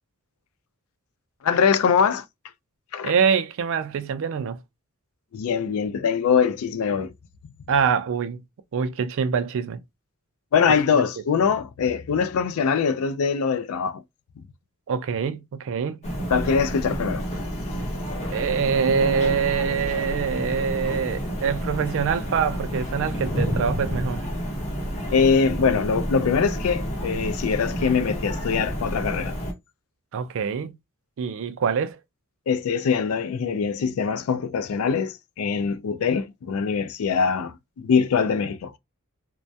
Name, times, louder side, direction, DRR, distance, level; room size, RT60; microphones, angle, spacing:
voice 1, 1.4-2.3 2.9-3.1 5.3-7.1 10.5-14.0 14.4-14.5 16.3-17.3 25.1-29.4 32.5-38.7, left 6 dB, 75° left, 0.4 m, -23 dB
voice 2, 3.0-4.6 7.7-8.4 8.7-9.8 14.9-16.0 18.3-24.2 30.1-30.7 31.2-32.0, right 6 dB, 65° right, 0.4 m, -24 dB
sound 1, 16.0-29.5, equal, 30° left, 0.8 m, -29 dB
2.2 x 2.1 x 2.6 m
head